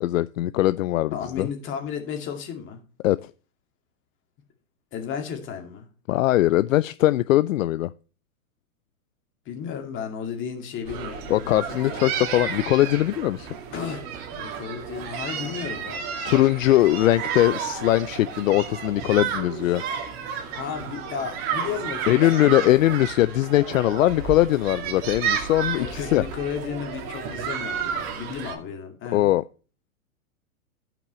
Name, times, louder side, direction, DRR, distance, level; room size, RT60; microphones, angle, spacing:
voice 1, 0.0-1.5 3.0-3.3 6.1-7.9 11.3-13.5 16.2-19.8 22.1-26.2 29.1-29.4, left 15 dB, 65° left, 0.6 m, -21 dB
voice 2, 1.1-2.8 4.9-5.9 9.5-12.1 13.7-16.2 20.5-23.0 25.7-29.3, left 7 dB, 25° left, 2.4 m, -34 dB
sound 1, 10.8-28.6, right 7 dB, 45° right, 2.2 m, -32 dB
15.5 x 6.0 x 3.1 m
hypercardioid pair, 135°, 44 cm